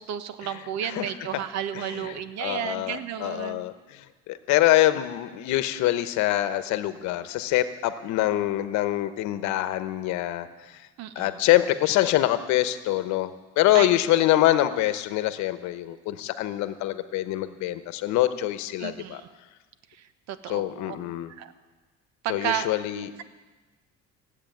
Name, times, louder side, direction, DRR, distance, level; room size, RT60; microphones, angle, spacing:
voice 1, 0.0-3.6 11.0-11.4 13.7-13.9 18.8-19.3 19.9-21.0 21.3-21.5 22.2-22.7 22.9-23.2, right 9 dB, 65° right, 12 dB, 1.1 m, -33 dB
voice 2, 2.4-10.5 11.2-13.3 13.6-19.2 20.5-21.3 22.3-23.1, left 14 dB, 75° left, 12 dB, 1.0 m, -25 dB
16.5 x 8.2 x 9.3 m, 1.3 s
cardioid pair, 105°, 29 cm